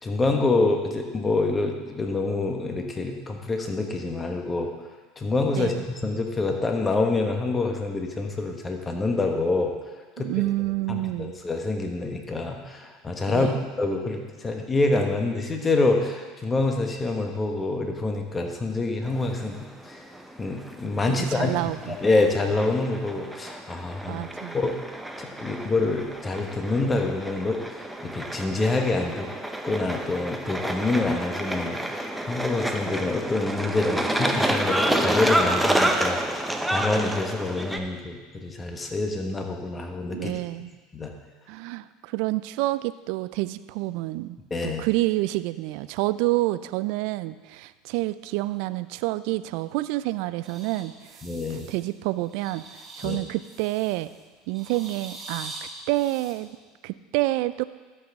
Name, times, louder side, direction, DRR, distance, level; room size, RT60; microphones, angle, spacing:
voice 1, 0.0-4.7 5.2-9.7 10.2-10.3 10.9-20.0 20.4-21.6 21.9-24.2 24.5-24.8 25.2-29.3 29.6-40.3 40.9-41.1 44.5-44.8 51.2-51.7 53.0-53.2, left 3 dB, 20° left, 3 dB, 1.3 m, -26 dB
voice 2, 10.2-11.3 13.3-13.6 21.1-21.9 24.1-24.6 40.1-40.7 41.5-44.4 44.6-51.2 51.5-54.1 54.5-56.6 56.8-57.6, right 18 dB, 70° right, 15 dB, 0.3 m, -28 dB
sound 1, 19.0-37.8, right 1 dB, 5° right, 0.8 m, -29 dB
sound 2, 50.4-51.9 52.2-54.1 54.5-56.3, right 2 dB, 30° right, 2.3 m, -43 dB
13.0 x 6.0 x 3.6 m, 1.3 s
hypercardioid pair, 90°, 0 cm